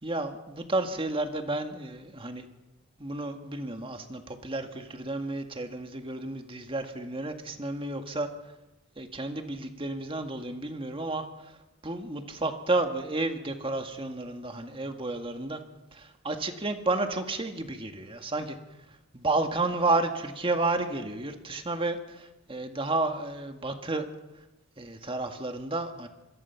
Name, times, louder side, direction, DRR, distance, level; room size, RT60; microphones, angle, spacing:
voice 1, 0.0-2.5 3.0-8.3 9.0-11.6 11.8-15.6 15.9-18.6 19.1-24.0 24.8-26.1, right 2 dB, 25° right, 6 dB, 1.9 m, -31 dB
27.0 x 22.0 x 5.9 m, 1.0 s
head